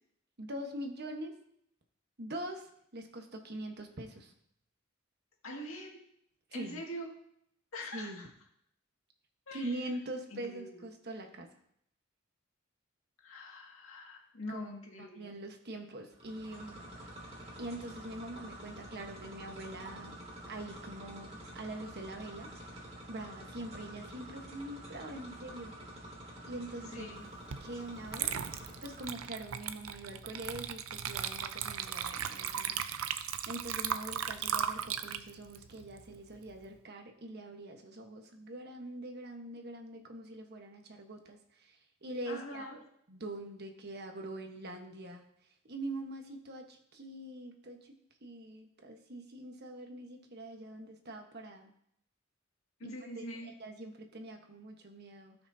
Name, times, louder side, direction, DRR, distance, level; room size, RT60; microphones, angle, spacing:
voice 1, 0.4-1.4 2.2-4.3 6.5-6.8 7.9-8.2 9.5-11.5 14.5-14.7 15.0-16.8 17.6-20.2 20.5-22.5 23.1-25.7 26.4-27.1 27.6-28.3 28.8-42.7 43.1-45.2 45.7-48.0 48.2-51.7 52.8-55.4, right 1 dB, 55° right, 4 dB, 1.3 m, -43 dB
voice 2, 5.4-6.1 6.5-7.2 7.7-8.3 9.5-9.8 10.3-10.9 13.2-15.3 26.9-27.2 42.3-42.8 52.8-53.5, left 1 dB, 85° left, 0 dB, 2.1 m, -44 dB
sound 1, 16.1-29.5, right 1 dB, 30° right, 2.1 m, -48 dB
Water / Liquid, 27.5-27.7 28.1-36.6, right 8 dB, 85° right, 0.6 m, -37 dB
17.0 x 6.0 x 2.8 m, 0.72 s
head